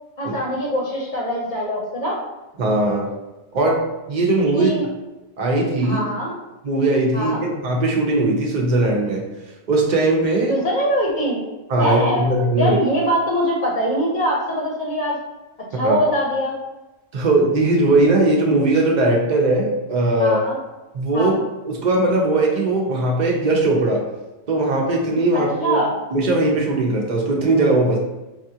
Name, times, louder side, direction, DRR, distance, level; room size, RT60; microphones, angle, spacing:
voice 1, 0.2-2.2 4.5-4.9 5.8-6.3 7.1-7.5 10.5-11.4 11.8-12.3 12.6-15.1 15.7-16.6 20.2-20.6 21.1-21.4 25.3-25.9, equal, 50° left, -3 dB, 0.8 m, -22 dB
voice 2, 2.6-3.1 3.5-3.8 4.1-4.7 5.4-6.0 6.6-9.2 9.7-10.5 11.7-12.8 15.7-16.0 17.1-20.4 20.9-21.3 21.7-24.0 24.5-25.8 26.1-28.0, right 2 dB, 45° right, -1 dB, 0.8 m, -19 dB
4.9 x 2.4 x 2.7 m, 1.1 s
omnidirectional pair, 1.1 m